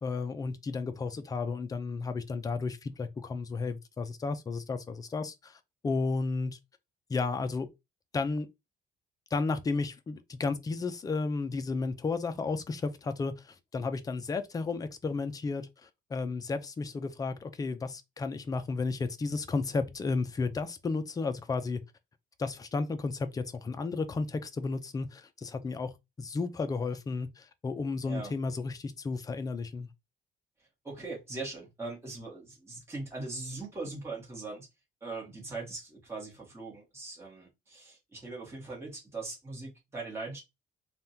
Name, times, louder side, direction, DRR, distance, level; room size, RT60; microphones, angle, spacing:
voice 1, 0.0-6.6 7.1-7.7 8.1-8.5 9.3-15.7 16.1-21.8 22.4-25.9 26.2-29.9, left 4 dB, 20° left, 0.4 m, -33 dB
voice 2, 30.8-34.7 35.0-40.4, right 3 dB, 15° right, 1.3 m, -40 dB
3.4 x 2.3 x 2.7 m
cardioid pair, 160°, 19 cm